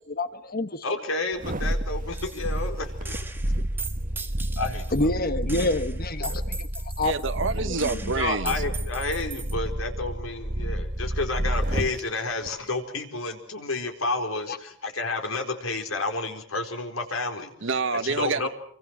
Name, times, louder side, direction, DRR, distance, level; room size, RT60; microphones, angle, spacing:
voice 1, 0.1-0.9 4.9-6.7 7.0-7.1 14.5-14.6, left 2 dB, 45° left, 10 dB, 1.2 m, -27 dB
voice 2, 0.8-3.2 4.6-5.1 6.3-6.4 8.2-17.5 18.0-18.5, left 3 dB, 85° left, 4 dB, 4.4 m, -30 dB
sound 1, 1.3-12.0 12.4-12.5, right 1 dB, 40° right, 2.1 m, -30 dB
Gunshot gunfire, 2.1-2.7 3.0-5.1 5.5-9.5, right 4 dB, 10° right, 1.7 m, -39 dB
voice 3, 7.0-8.6 17.6-18.5, right 4 dB, 65° right, 9 dB, 1.1 m, -27 dB
28.0 x 24.5 x 6.2 m, 0.63 s
head